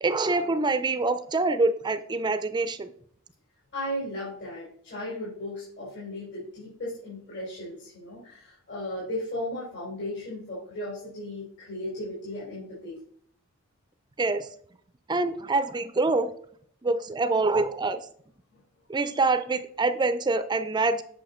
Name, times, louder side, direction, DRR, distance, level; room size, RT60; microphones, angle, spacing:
voice 1, 0.0-2.9 14.2-14.5 15.1-16.3 16.8-18.0 18.9-21.0, right 3 dB, 20° right, 12 dB, 0.5 m, -25 dB
voice 2, 3.7-13.0, left 1 dB, 60° left, -8 dB, 4.1 m, -36 dB
8.8 x 5.8 x 4.3 m, 0.62 s
head